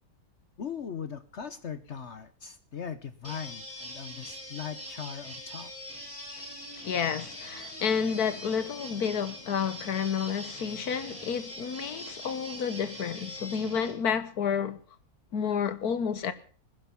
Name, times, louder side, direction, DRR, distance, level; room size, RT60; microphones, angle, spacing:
voice 1, 0.6-5.7, left 7 dB, 55° left, 1.2 m, -39 dB
sound 1, 3.2-13.9, equal, 10° left, 5.9 m, -43 dB
voice 2, 6.8-14.8 15.3-16.3, left 7 dB, 85° left, 1.8 m, -30 dB
19.5 x 10.5 x 6.9 m
omnidirectional pair, 1.6 m